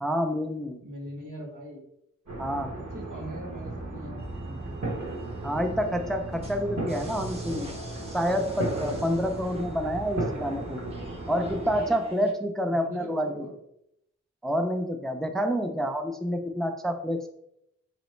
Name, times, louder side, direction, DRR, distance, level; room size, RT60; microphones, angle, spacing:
voice 1, 0.0-0.8 2.4-2.7 5.4-7.7 8.1-10.8 11.3-13.4 14.4-17.3, equal, ahead, 6 dB, 0.4 m, -28 dB
voice 2, 0.8-1.9 2.7-4.8 12.7-13.5, right 1 dB, 85° right, -1 dB, 1.1 m, -42 dB
sound 1, 2.3-11.9, right 2 dB, 70° right, 1.4 m, -35 dB
sound 2, 4.2-12.3, right 2 dB, 20° right, 0.8 m, -42 dB
3.9 x 3.1 x 3.1 m, 0.75 s
wide cardioid pair, 60°, 30 cm